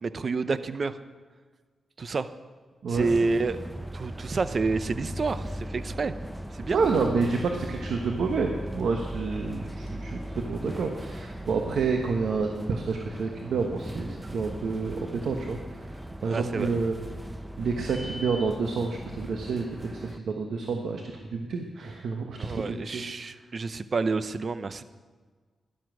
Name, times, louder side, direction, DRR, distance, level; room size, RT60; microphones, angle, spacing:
voice 1, 0.0-1.0 2.0-2.3 2.9-3.6 3.9-6.1 6.5-6.8 16.2-16.7 22.4-24.8, right 4 dB, 50° right, 13 dB, 0.7 m, -29 dB
sound 1, 2.9-20.2, equal, 10° right, 0.7 m, -38 dB
voice 2, 6.7-15.8 16.2-16.9 17.6-21.0 21.3-22.6 22.9-23.3, right 4 dB, 80° right, 3 dB, 1.1 m, -29 dB
13.0 x 11.5 x 6.2 m, 1.5 s
cardioid pair, 60°, 0 cm